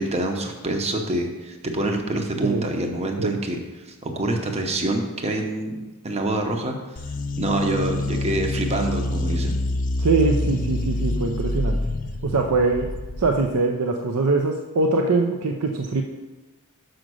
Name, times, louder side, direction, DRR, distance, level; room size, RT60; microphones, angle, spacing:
voice 1, 0.0-3.6 3.8-5.7 6.0-6.7 7.4-9.6, right 1 dB, 30° right, 3 dB, 0.8 m, -26 dB
sound 1, 7.0-13.5, left 1 dB, 35° left, 0.5 m, -26 dB
voice 2, 10.0-11.8 12.2-12.9 13.2-16.0, right 3 dB, 75° right, 3 dB, 0.6 m, -22 dB
6.3 x 5.0 x 6.2 m, 1.1 s
head